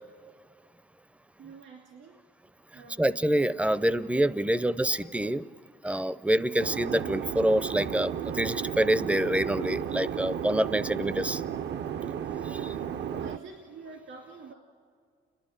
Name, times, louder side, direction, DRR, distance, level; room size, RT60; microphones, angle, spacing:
voice 1, 1.4-2.2 2.7-3.1 4.8-4.9 13.1-14.5, right 4 dB, 75° right, 0 dB, 2.4 m, -46 dB
voice 2, 3.0-5.5 5.8-11.4 12.4-12.7, right 1 dB, 5° right, 17 dB, 0.5 m, -26 dB
sound 1, 6.6-13.4, right 9 dB, 60° right, 0.6 m, -33 dB
29.0 x 11.5 x 9.9 m, 2.1 s
cardioid pair, 90°, 20 cm